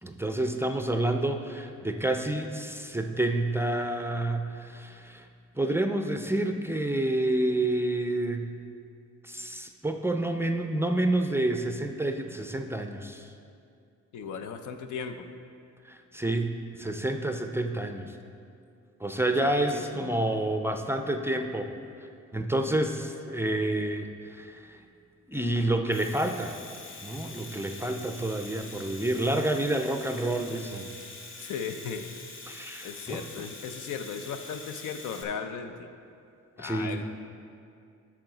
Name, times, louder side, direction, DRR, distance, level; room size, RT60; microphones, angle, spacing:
voice 1, 0.0-5.2 5.6-8.5 9.2-13.3 15.9-18.2 19.0-21.7 22.3-24.8 25.3-26.6 27.0-30.9 32.5-33.2 36.6-37.0, right 1 dB, 10° right, 5 dB, 0.4 m, -29 dB
voice 2, 14.1-15.3 19.4-20.1 31.4-32.1 32.8-35.9 36.6-37.1, left 6 dB, 80° left, 8 dB, 0.6 m, -37 dB
Domestic sounds home sounds, 25.7-35.2, left 3 dB, 40° left, 0.9 m, -45 dB
8.6 x 6.0 x 3.9 m, 2.4 s
cardioid pair, 90°, 30 cm